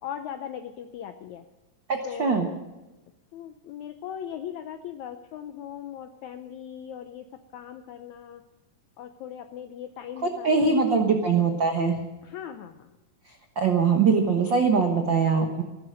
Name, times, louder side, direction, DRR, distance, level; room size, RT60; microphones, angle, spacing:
voice 1, 0.0-1.4 2.0-2.6 3.3-7.3 7.5-8.4 9.0-10.9 11.2-11.5 12.2-12.9, left 9 dB, 80° left, 8 dB, 1.6 m, -39 dB
voice 2, 1.9-2.5 10.2-11.9 13.6-15.6, right 5 dB, 75° right, 3 dB, 1.0 m, -22 dB
15.5 x 12.5 x 6.4 m, 1.1 s
omnidirectional pair, 4.1 m